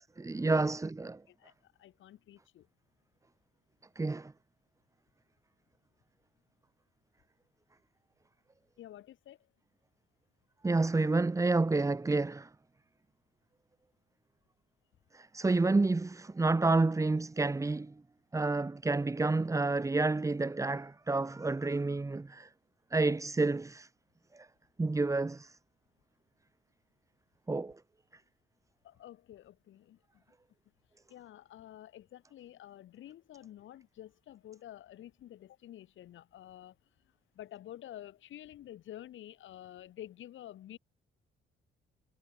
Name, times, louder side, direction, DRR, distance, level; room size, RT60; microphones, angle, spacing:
voice 1, 0.0-1.2 4.0-4.3 10.6-12.5 15.1-17.9 18.3-22.5 22.9-23.9 24.3-24.5 24.8-25.6 27.5-27.8, right 3 dB, 15° right, 0.9 m, -29 dB
voice 2, 1.3-2.7 8.8-9.4 28.8-30.2 31.1-36.7 37.3-40.8, left 12 dB, 75° left, 3.4 m, -50 dB
cardioid pair, 90°, 20 cm